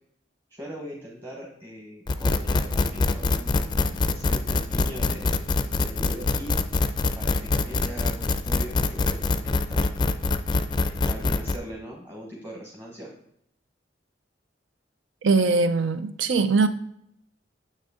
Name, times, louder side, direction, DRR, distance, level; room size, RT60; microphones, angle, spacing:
voice 1, 0.5-6.7 7.1-9.9 10.9-13.1, equal, 15° right, 1.2 m, -40 dB
sound 1, 2.1-11.6, left 3 dB, 25° left, 0.4 m, -24 dB
voice 2, 15.2-16.7, right 4 dB, 85° right, 0.6 m, -21 dB
7.4 x 6.5 x 3.6 m
head